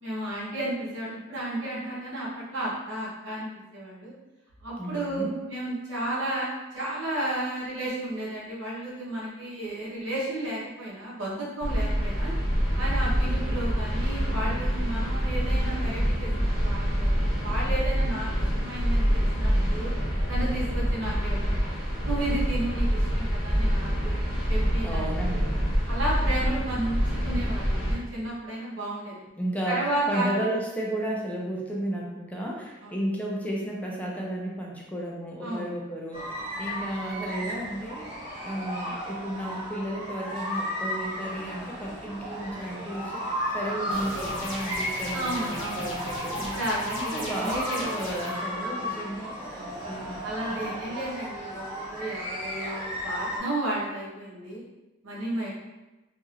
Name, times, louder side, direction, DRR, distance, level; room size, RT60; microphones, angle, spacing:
voice 1, 0.0-4.1 4.6-12.3 12.8-18.3 18.6-19.9 20.3-21.6 22.0-24.2 24.5-25.3 25.9-27.0 27.2-29.2 29.7-30.4 32.8-32.9 35.4-35.7 45.1-45.9 46.5-47.9 48.6-49.2 49.5-49.8 50.2-54.6 55.0-55.5, right 1 dB, 85° right, -6 dB, 1.0 m, -33 dB
voice 2, 4.8-5.3 24.8-25.6 29.4-29.8 30.1-49.6 49.9-50.2 50.5-51.0, right 1 dB, 10° left, -3 dB, 0.4 m, -33 dB
sound 1, 11.6-27.9, equal, 10° right, 1.0 m, -26 dB
sound 2, 36.1-53.4, equal, 35° right, 1.1 m, -34 dB
sound 3, 43.9-48.3, left 1 dB, 80° left, 0.8 m, -38 dB
2.8 x 2.7 x 2.4 m, 1.1 s
head